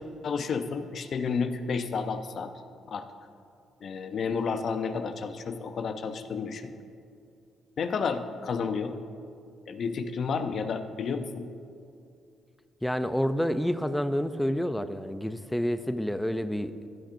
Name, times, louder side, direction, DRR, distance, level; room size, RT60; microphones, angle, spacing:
voice 1, 0.2-2.5 2.9-3.1 3.8-6.7 7.8-8.9 9.7-11.5, left 5 dB, 55° left, 9 dB, 0.6 m, -31 dB
voice 2, 12.8-16.7, equal, 5° left, 12 dB, 0.4 m, -28 dB
15.5 x 8.8 x 2.6 m, 2.5 s
cardioid pair, 90°, 0 cm